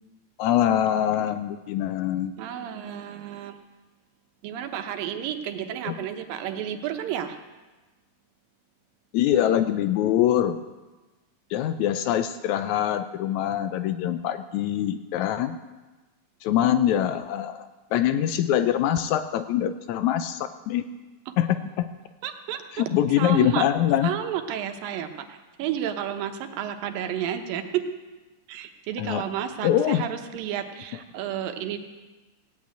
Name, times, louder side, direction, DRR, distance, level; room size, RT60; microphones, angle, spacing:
voice 1, 0.4-2.3 5.9-6.0 9.1-10.6 11.5-15.6 16.4-20.8 21.4-21.9 22.7-24.1 29.0-29.2 29.6-30.1, left 11 dB, 85° left, 11 dB, 1.6 m, -24 dB
voice 2, 2.4-3.6 4.4-7.4 22.2-22.8 23.2-23.7 24.0-27.8 28.5-31.8, right 10 dB, 90° right, 6 dB, 2.8 m, -31 dB
16.5 x 8.5 x 9.0 m, 1.2 s
omnidirectional pair, 3.9 m